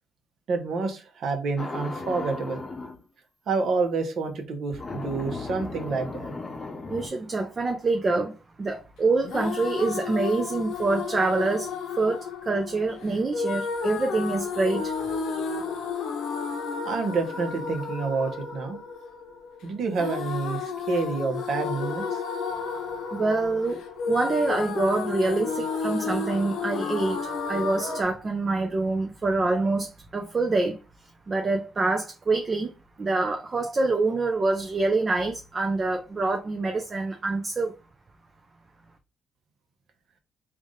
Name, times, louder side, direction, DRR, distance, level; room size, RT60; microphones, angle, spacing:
voice 1, 0.5-2.6 3.5-6.3 16.8-18.8 19.6-22.2, right 4 dB, 65° right, 1.0 m, -28 dB
sound 1, 1.6-3.0 4.7-7.1, left 3 dB, 30° left, 0.7 m, -36 dB
voice 2, 6.9-14.9 23.1-23.8 24.1-32.7 33.0-37.7, right 3 dB, 35° right, 0.5 m, -26 dB
sound 2, 9.2-28.0, left 5 dB, 80° left, 0.8 m, -32 dB
3.5 x 2.5 x 3.8 m
cardioid pair, 90°, 0 cm